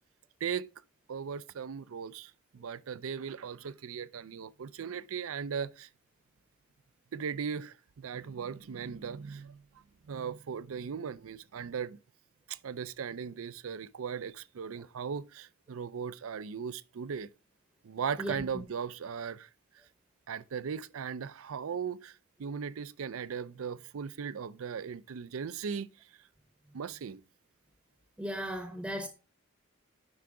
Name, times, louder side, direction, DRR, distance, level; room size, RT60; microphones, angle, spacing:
voice 1, 1.1-5.9 7.1-9.6 10.1-12.0 12.5-17.3 17.8-19.5 20.3-22.1 22.4-25.9 26.7-27.2, right 6 dB, 80° right, 0.4 m, -38 dB
voice 2, 28.2-29.1, equal, 5° right, 0.7 m, -36 dB
9.6 x 5.7 x 3.8 m
head